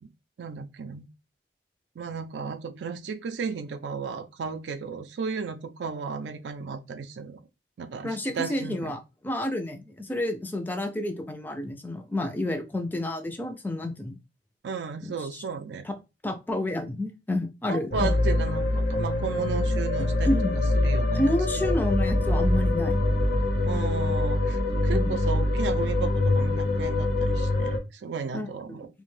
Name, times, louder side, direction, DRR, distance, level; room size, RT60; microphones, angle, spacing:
voice 1, 0.4-1.1 2.0-7.4 7.8-9.0 14.6-15.9 17.7-21.2 23.6-28.9, right 5 dB, 80° right, 0.4 m, -34 dB
voice 2, 8.0-14.2 15.0-15.4 15.8-15.9 16.2-18.1 20.2-20.6 21.1-23.0 24.9-25.2 28.3-28.9, left 1 dB, 10° left, 0.3 m, -30 dB
sound 1, 17.9-27.8, left 2 dB, 60° left, 0.6 m, -24 dB
2.5 x 2.1 x 3.1 m
head